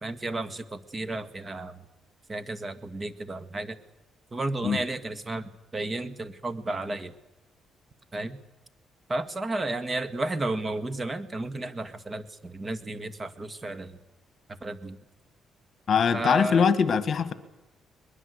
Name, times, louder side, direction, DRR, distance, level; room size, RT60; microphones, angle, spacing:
voice 1, 0.0-1.8 2.3-3.8 4.3-7.1 8.1-8.4 9.1-14.0 14.6-15.0 16.1-16.7, right 2 dB, 25° right, 11 dB, 1.9 m, -32 dB
voice 2, 15.9-17.3, left 6 dB, 50° left, 12 dB, 1.7 m, -22 dB
22.5 x 21.5 x 8.2 m, 0.99 s
cardioid pair, 90°, 0 cm